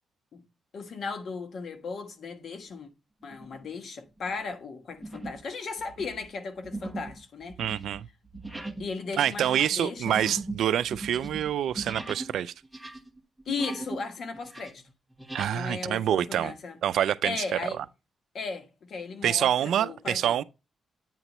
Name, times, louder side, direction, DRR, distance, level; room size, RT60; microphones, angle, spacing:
voice 1, 0.7-2.9 3.2-7.6 8.8-10.2 13.4-14.8 15.5-16.8 17.2-17.8 18.3-20.4, left 4 dB, 60° left, 1.3 m, -36 dB
sound 1, 3.3-3.7 4.2-4.4 5.0-5.5 5.8-12.3 12.6-14.1 14.3-15.5, right 2 dB, ahead, 1.1 m, -39 dB
voice 2, 7.6-8.1 9.2-12.5 15.3-16.5 16.8-17.4 17.6-17.9 19.2-20.4, right 10 dB, 85° right, 0.3 m, -26 dB
8.9 x 3.0 x 5.4 m
cardioid pair, 110°, 0 cm